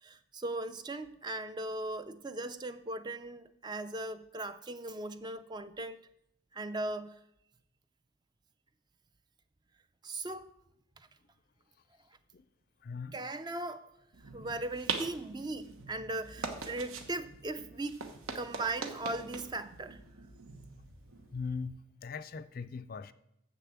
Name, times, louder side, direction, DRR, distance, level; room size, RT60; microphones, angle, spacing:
voice 1, 0.0-6.0 6.5-7.2 10.0-10.5 11.0-11.1 13.1-13.9 14.3-18.1 18.3-20.0, right 2 dB, 20° right, 0.4 m, -38 dB
voice 2, 12.8-13.2 21.3-21.8 22.0-23.1, left 5 dB, 45° left, 0.4 m, -39 dB
sound 1, 14.1-21.7, right 4 dB, 90° right, 1.1 m, -43 dB
7.6 x 6.8 x 7.2 m
head